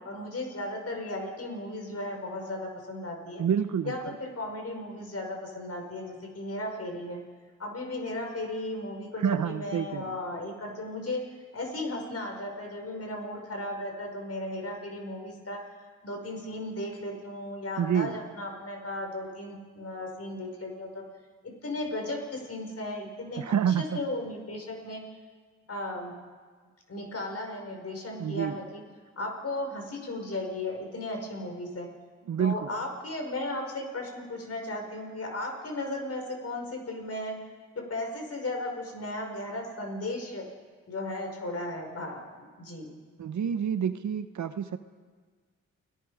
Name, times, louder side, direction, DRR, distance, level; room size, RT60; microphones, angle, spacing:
voice 1, 0.0-3.4 3.9-7.2 7.6-11.2 11.5-15.7 16.0-21.0 21.4-25.0 25.7-26.1 26.9-28.8 29.2-31.9 32.4-37.4 37.8-40.5 40.9-42.3 42.6-42.9, left 1 dB, 50° left, 2 dB, 5.7 m, -35 dB
voice 2, 3.4-4.0 9.2-10.2 17.8-18.2 23.4-24.0 28.2-28.6 32.3-32.7 43.2-44.8, right 8 dB, 65° right, 11 dB, 1.1 m, -28 dB
30.0 x 18.0 x 5.1 m, 1.5 s
supercardioid pair, 50°, 31 cm